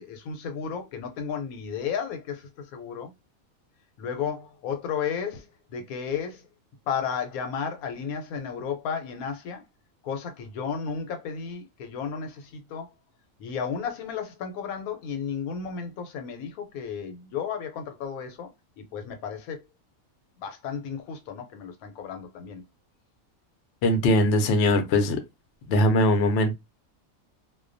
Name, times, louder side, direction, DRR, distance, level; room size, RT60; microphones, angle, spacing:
voice 1, 0.0-3.1 4.0-6.5 6.9-9.6 10.0-12.9 13.4-19.6 20.4-22.6, left 7 dB, 85° left, 1.1 m, -33 dB
voice 2, 23.8-25.2 25.7-26.5, left 1 dB, 65° left, 0.7 m, -21 dB
2.3 x 2.2 x 2.5 m
omnidirectional pair, 1.5 m